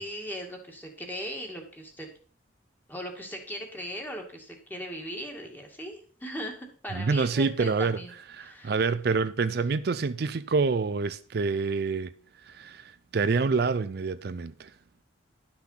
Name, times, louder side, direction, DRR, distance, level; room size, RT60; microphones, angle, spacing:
voice 1, 0.0-2.1 2.9-8.1 8.4-8.8, equal, 10° left, 2.2 m, -38 dB
voice 2, 6.9-8.0 8.3-12.1 12.4-14.7, right 4 dB, 55° right, 0.4 m, -27 dB
12.0 x 6.0 x 5.7 m
head